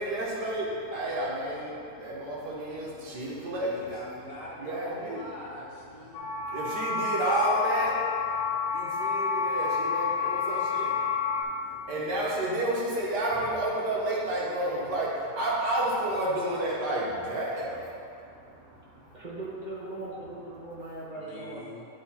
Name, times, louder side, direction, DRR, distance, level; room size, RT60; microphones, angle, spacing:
voice 1, 0.0-3.9 4.6-5.2 6.2-18.0 18.5-19.0, right 1 dB, 70° right, -5 dB, 1.8 m, -31 dB
voice 2, 3.7-6.3 11.7-11.8 21.1-21.9, left 2 dB, 55° left, -4 dB, 1.3 m, -43 dB
sound 1, 6.1-11.4, left 5 dB, 80° left, 1.4 m, -29 dB
voice 3, 18.7-21.7, right 2 dB, 30° right, -6 dB, 1.3 m, -40 dB
10.0 x 3.9 x 4.3 m, 2.6 s
omnidirectional pair, 1.9 m